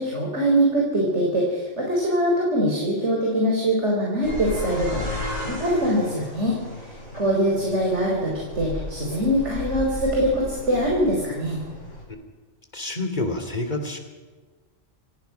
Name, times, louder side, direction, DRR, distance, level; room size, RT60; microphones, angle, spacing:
voice 1, 0.0-6.6 7.1-11.6, right 1 dB, 65° right, -2 dB, 4.6 m, -23 dB
sound 1, 4.2-12.0, left 1 dB, 85° left, 7.2 m, -34 dB
voice 2, 12.7-14.0, left 2 dB, 35° left, 6 dB, 2.9 m, -28 dB
28.5 x 17.0 x 5.8 m, 1.4 s
omnidirectional pair, 1.3 m